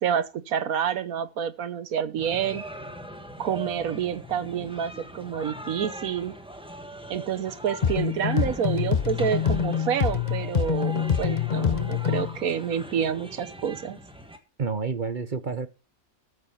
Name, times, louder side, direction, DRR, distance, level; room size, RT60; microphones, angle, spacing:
voice 1, 0.0-2.6 3.4-6.4 7.1-14.0, right 8 dB, 75° right, 1.4 m, -28 dB
sound 1, 2.2-14.4, equal, 5° right, 1.3 m, -41 dB
Immaculate Balearic, 7.8-12.4, left 8 dB, 40° left, 0.7 m, -25 dB
voice 2, 14.6-15.7, right 5 dB, 40° right, 0.9 m, -29 dB
14.0 x 6.2 x 5.6 m
omnidirectional pair, 1.5 m